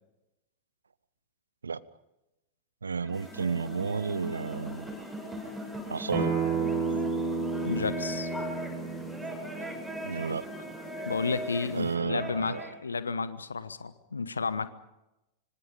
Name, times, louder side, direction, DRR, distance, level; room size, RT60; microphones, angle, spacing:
voice 1, 2.8-4.9 5.9-6.3 10.0-10.4 11.7-12.7, right 5 dB, 75° right, 20 dB, 0.7 m, -32 dB
sound 1, 2.9-12.8, equal, ahead, 7.7 m, -40 dB
sound 2, 3.1-12.0, left 3 dB, 15° left, 6.2 m, -48 dB
Acoustic guitar, 6.1-11.3, right 5 dB, 35° right, 4.9 m, -32 dB
voice 2, 7.6-8.3 11.0-14.7, left 4 dB, 75° left, 14 dB, 1.1 m, -32 dB
25.5 x 25.5 x 5.2 m, 0.92 s
figure-of-eight pair, 90°, 0 cm